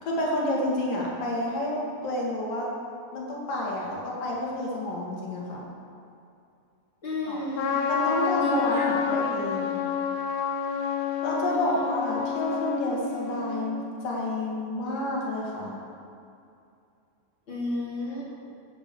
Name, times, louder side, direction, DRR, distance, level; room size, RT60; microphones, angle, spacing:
voice 1, 0.0-2.7 3.1-5.7 7.3-7.4 7.9-9.8 11.2-15.8, left 1 dB, 55° left, -4 dB, 3.8 m, -29 dB
voice 2, 7.0-7.7 8.3-9.5 11.4-11.8 17.5-18.5, left 1 dB, 30° left, -7 dB, 3.8 m, -32 dB
Trumpet, 7.5-13.8, left 7 dB, 80° left, 3.7 m, -29 dB
15.0 x 8.7 x 7.1 m, 2.6 s
omnidirectional pair, 4.8 m